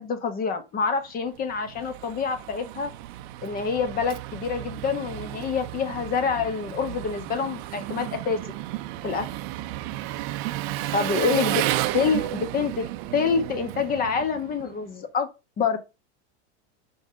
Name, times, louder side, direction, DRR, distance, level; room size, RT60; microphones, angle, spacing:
voice 1, 0.0-2.9 3.4-8.4 9.0-9.3 10.9-11.6 11.9-15.3 15.6-15.8, left 5 dB, 25° left, 1.3 m, -26 dB
Engine, 1.3-14.8, right 15 dB, 45° right, 0.7 m, -33 dB
5.2 x 4.8 x 6.0 m
supercardioid pair, 145°, 34 cm